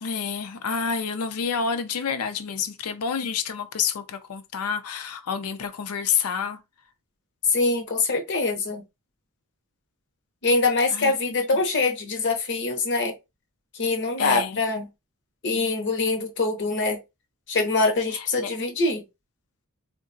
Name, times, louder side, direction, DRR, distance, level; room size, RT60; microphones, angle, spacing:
voice 1, 0.0-6.6 10.9-11.1 14.2-14.6 18.1-18.5, left 6 dB, 85° left, 0.5 m, -28 dB
voice 2, 7.5-8.8 10.4-13.2 13.7-14.9 15.4-17.0 17.5-19.0, left 3 dB, 55° left, 0.8 m, -24 dB
3.7 x 2.2 x 2.6 m
head